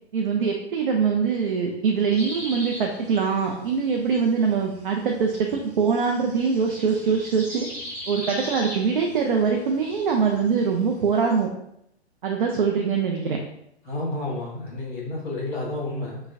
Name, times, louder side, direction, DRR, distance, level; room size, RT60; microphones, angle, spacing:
voice 1, 0.1-7.7 8.1-11.5 12.2-13.4, right 5 dB, 50° right, 1 dB, 0.6 m, -23 dB
sound 1, 2.1-11.4, left 1 dB, 5° left, 0.4 m, -40 dB
voice 2, 13.8-16.2, left 2 dB, 45° left, -3 dB, 1.4 m, -30 dB
5.1 x 2.3 x 2.6 m, 0.77 s
figure-of-eight pair, 125°, 33 cm